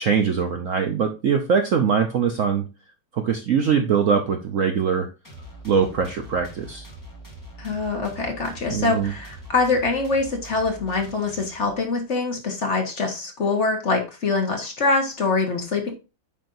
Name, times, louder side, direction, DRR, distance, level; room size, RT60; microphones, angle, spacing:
voice 1, 0.0-2.6 3.1-5.1 5.6-6.9 8.7-9.1, right 6 dB, 60° right, 5 dB, 0.8 m, -22 dB
sound 1, 5.2-12.0, right 1 dB, 10° left, 1.8 m, -43 dB
voice 2, 7.6-15.9, left 3 dB, 40° left, 3 dB, 1.4 m, -24 dB
8.6 x 5.4 x 2.6 m, 0.29 s
omnidirectional pair, 2.1 m